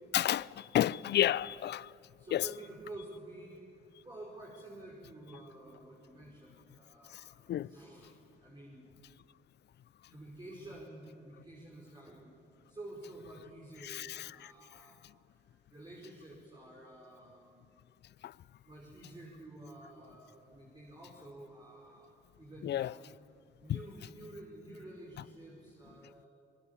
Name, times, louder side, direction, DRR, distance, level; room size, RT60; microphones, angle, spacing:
voice 1, 0.1-1.9 2.3-2.5 7.1-7.2 7.5-7.7 13.8-14.5 18.2-18.3 22.6-22.9 23.7-23.8, left 12 dB, 60° left, 0.5 m, -31 dB
voice 2, 2.2-7.3 7.7-8.1 8.4-8.9 10.1-12.3 12.7-15.0 15.7-17.6 18.7-23.0 23.6-26.3, right 1 dB, 20° right, 5.4 m, -50 dB
25.5 x 21.5 x 8.4 m
cardioid pair, 90°, 20 cm